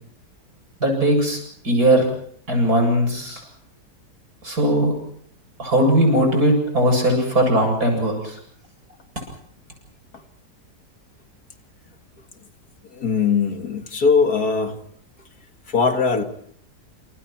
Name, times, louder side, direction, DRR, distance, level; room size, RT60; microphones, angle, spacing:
voice 1, 0.8-2.1 2.5-3.4 4.4-4.9 5.6-8.4, right 1 dB, 60° right, 3 dB, 8.7 m, -19 dB
voice 2, 12.9-14.8 15.7-16.2, left 5 dB, 60° left, 6 dB, 2.3 m, -20 dB
29.5 x 28.0 x 4.6 m, 0.63 s
omnidirectional pair, 1.8 m